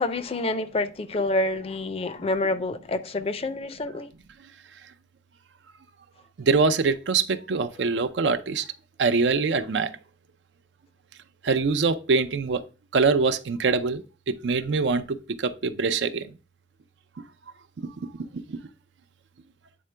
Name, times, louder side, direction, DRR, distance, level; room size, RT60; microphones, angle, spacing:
voice 1, 0.0-4.1, left 2 dB, 35° left, 0.4 m, -27 dB
voice 2, 6.4-8.7 9.0-9.9 11.4-12.6 12.9-16.3 18.0-18.6, right 4 dB, 80° right, 0.5 m, -24 dB
8.5 x 3.7 x 3.3 m
head